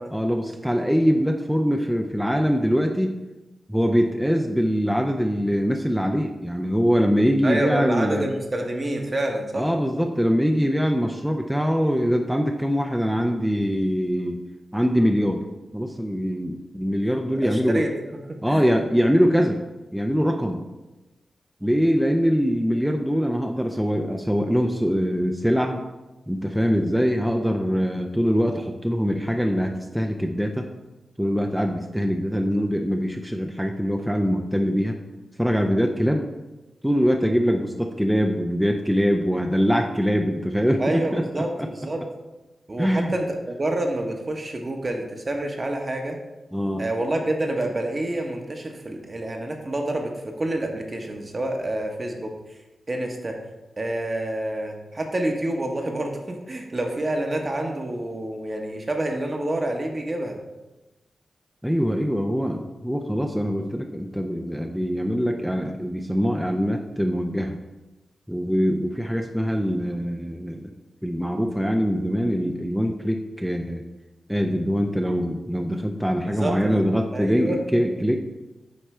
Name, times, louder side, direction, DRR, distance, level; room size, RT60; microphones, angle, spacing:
voice 1, 0.1-3.1 3.7-8.3 9.6-14.4 14.7-15.4 15.7-17.9 18.4-19.6 19.9-20.6 21.6-25.8 26.3-30.7 31.2-35.0 35.4-36.3 36.8-41.2 41.6-41.7 42.8-43.1 46.5-46.8 61.6-67.6 68.3-70.7 71.0-73.8 74.3-78.2, equal, 5° right, 3 dB, 0.6 m, -23 dB
voice 2, 7.4-9.7 17.3-18.6 40.8-42.0 42.7-46.2 46.8-52.3 52.9-53.4 53.8-60.4 76.2-76.8 77.1-77.6, right 1 dB, 40° right, 2 dB, 1.1 m, -28 dB
9.4 x 3.3 x 3.3 m, 1.1 s
supercardioid pair, 40°, 0 cm